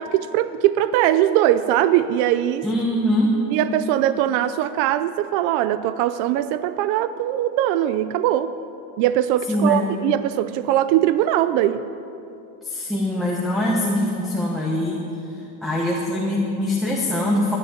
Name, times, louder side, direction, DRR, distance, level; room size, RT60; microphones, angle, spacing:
voice 1, 0.0-2.7 3.5-8.5 9.0-11.9, right 12 dB, 65° right, 13 dB, 0.6 m, -21 dB
voice 2, 2.6-3.3 9.5-9.8 12.6-15.0 15.6-17.6, left 1 dB, ahead, -3 dB, 1.1 m, -22 dB
12.0 x 9.9 x 9.6 m, 2.7 s
cardioid pair, 180°, 39 cm